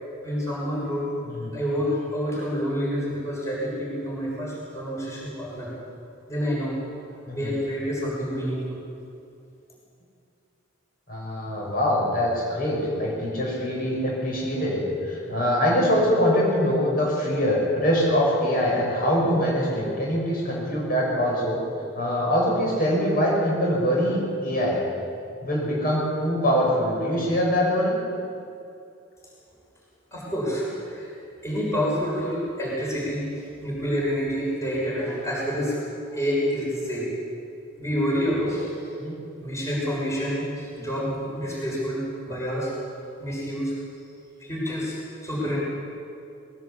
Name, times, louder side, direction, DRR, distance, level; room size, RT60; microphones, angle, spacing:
voice 1, 0.2-1.1 1.5-5.7 6.3-6.8 7.3-8.8 30.1-31.1 31.4-33.3 33.6-35.8 36.1-37.1 37.8-38.7 39.4-42.7 43.2-43.7 44.4-45.6, equal, 15° left, -5 dB, 7.0 m, -28 dB
voice 2, 11.1-21.6 21.9-24.8 25.4-28.0 39.0-39.1 40.3-40.4, equal, 45° left, -3 dB, 6.6 m, -23 dB
21.5 x 19.5 x 8.5 m, 2.5 s
head